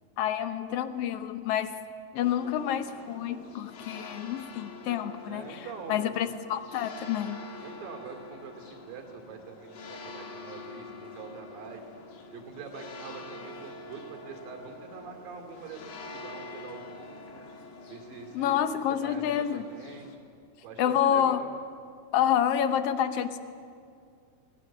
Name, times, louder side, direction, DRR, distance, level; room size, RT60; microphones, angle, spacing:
voice 1, 0.2-1.8 2.1-5.4 5.9-7.4 18.3-19.6 20.8-21.4 22.1-23.4, left 10 dB, 75° left, 10 dB, 1.4 m, -28 dB
sound 1, 2.2-20.2, left 3 dB, 50° left, 2.8 m, -46 dB
voice 2, 5.3-6.3 7.6-11.8 12.3-17.4 17.9-18.7 19.0-20.2 20.6-21.5, right 5 dB, 75° right, 3 dB, 4.2 m, -44 dB
23.0 x 17.5 x 9.9 m, 2.3 s
omnidirectional pair, 4.1 m